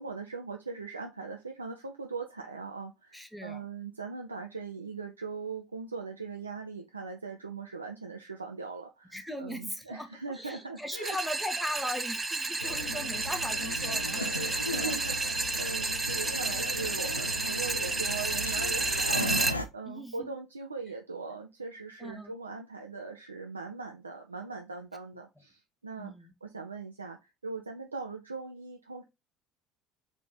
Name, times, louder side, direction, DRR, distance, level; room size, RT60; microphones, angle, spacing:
voice 1, 0.0-11.2 14.4-29.0, right 4 dB, 85° right, 0.4 m, -40 dB
voice 2, 3.1-3.7 9.1-10.1 10.3-15.0 19.9-20.3 22.0-22.3 26.0-26.3, left 1 dB, 5° left, 0.9 m, -39 dB
sound 1, 11.0-19.5, right 3 dB, 20° right, 0.5 m, -31 dB
sound 2, 12.6-19.7, left 1 dB, 90° left, 0.4 m, -36 dB
3.6 x 2.8 x 3.9 m
figure-of-eight pair, 60°, 0 cm